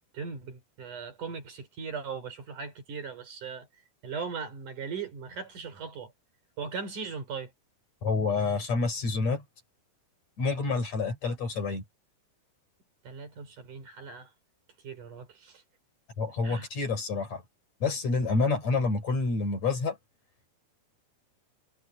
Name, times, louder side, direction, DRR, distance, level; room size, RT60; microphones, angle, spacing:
voice 1, 0.1-3.7 4.0-6.1 6.6-7.5 13.0-14.3 14.8-15.6 16.4-16.7 18.2-18.3, right 5 dB, 70° right, 5.6 m, -39 dB
voice 2, 8.0-9.4 10.4-11.8 16.2-17.4 17.8-20.0, left 4 dB, 55° left, 6.2 m, -28 dB
omnidirectional pair, 3.8 m